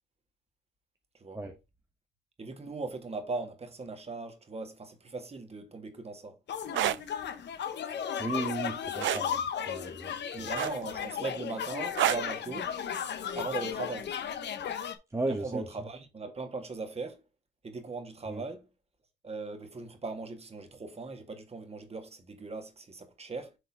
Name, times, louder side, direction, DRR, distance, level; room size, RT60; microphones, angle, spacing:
voice 1, 2.4-6.4 10.3-12.8 13.3-14.2 15.3-17.2 17.6-18.7 19.2-23.6, right 3 dB, 30° right, 1.9 m, -39 dB
sound 1, 6.5-15.0, left 8 dB, 60° left, 1.0 m, -35 dB
sound 2, 6.6-7.0 9.0-9.3 10.6-11.0 12.0-12.3 13.7-13.9, right 14 dB, 70° right, 0.4 m, -28 dB
voice 2, 8.2-10.5 15.1-15.6 18.3-18.4, right 2 dB, 15° right, 1.0 m, -35 dB
6.6 x 3.9 x 4.7 m
cardioid pair, 90°, 20 cm